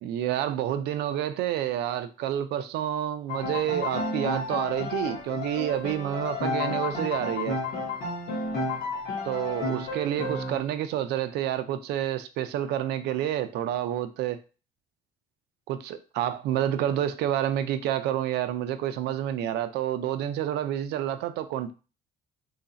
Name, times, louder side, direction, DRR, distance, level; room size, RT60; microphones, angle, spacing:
voice 1, 0.0-7.6 9.2-14.4 15.7-21.7, right 11 dB, 80° right, 0.5 m, -29 dB
Piano, 3.3-10.6, left 2 dB, 75° left, 1.2 m, -31 dB
3.2 x 2.4 x 3.9 m
cardioid pair, 110°, 17 cm